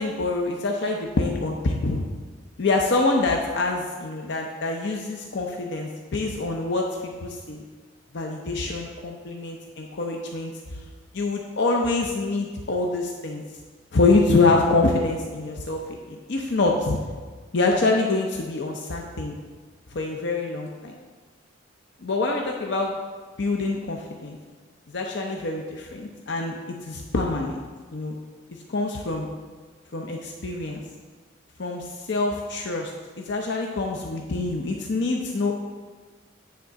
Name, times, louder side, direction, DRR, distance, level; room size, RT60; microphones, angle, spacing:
voice 1, 0.0-2.0 2.6-7.7 8.1-10.8 11.1-13.4 13.9-17.0 17.5-19.4 19.9-20.9 22.0-22.9 23.4-24.4 24.9-27.6 27.9-28.2 28.7-29.3 29.9-30.8 31.6-32.9 33.2-35.5, left 3 dB, 55° left, 1 dB, 0.6 m, -25 dB
9.5 x 3.8 x 5.6 m, 1.5 s
head